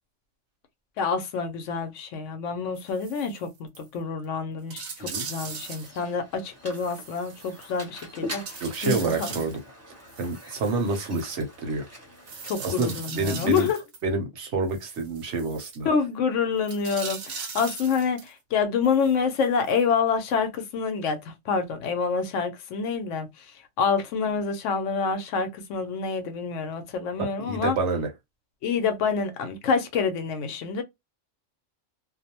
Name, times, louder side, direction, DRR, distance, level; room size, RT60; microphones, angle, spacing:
voice 1, 1.0-9.4 12.4-13.8 15.8-23.3 23.8-27.8 28.6-30.8, left 5 dB, 75° left, 0.9 m, -27 dB
sound 1, 2.8-3.4 3.8-3.9 4.2-4.3 4.7-6.0 6.7-8.0 8.5-9.6 10.1-11.4 12.3-14.0 14.7-15.8 16.6-18.3 18.8-19.8 20.3-20.4, right 6 dB, 90° right, 1.1 m, -40 dB
Mechanisms, 5.0-13.0, left 1 dB, 15° right, 0.7 m, -43 dB
voice 2, 8.6-9.6 10.2-11.9 12.6-13.7 14.0-15.9 27.2-28.1, right 3 dB, 65° right, 1.0 m, -28 dB
2.5 x 2.0 x 2.7 m
omnidirectional pair, 1.3 m